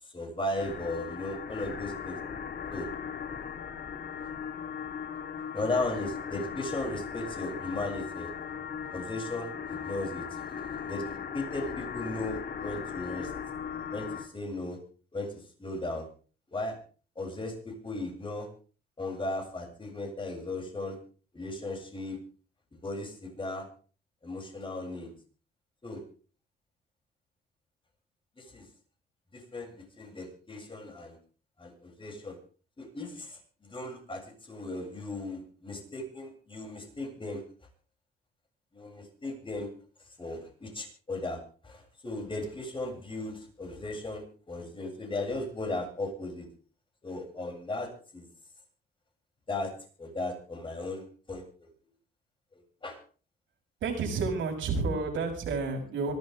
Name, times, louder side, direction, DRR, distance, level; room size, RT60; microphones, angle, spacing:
voice 1, 0.0-2.2 2.7-2.9 5.5-8.3 8.9-13.3 13.9-14.8 15.1-15.3 15.6-16.1 16.5-16.8 17.2-18.5 19.0-21.0 21.3-22.2 22.7-23.7 24.2-25.1 25.8-26.0 28.4-28.6 29.3-31.2 31.6-32.4 32.8-37.4 38.7-39.7 40.2-46.5 47.0-48.3 49.5-49.7 50.0-51.7 52.8-53.0, left 2 dB, 25° left, 1 dB, 7.8 m, -36 dB
sound 1, 0.6-14.3, left 7 dB, 55° left, 2.1 m, -38 dB
voice 2, 53.8-56.1, right 4 dB, 75° right, 2 dB, 6.3 m, -30 dB
26.0 x 12.5 x 3.7 m, 0.39 s
cardioid pair, 90°, 20 cm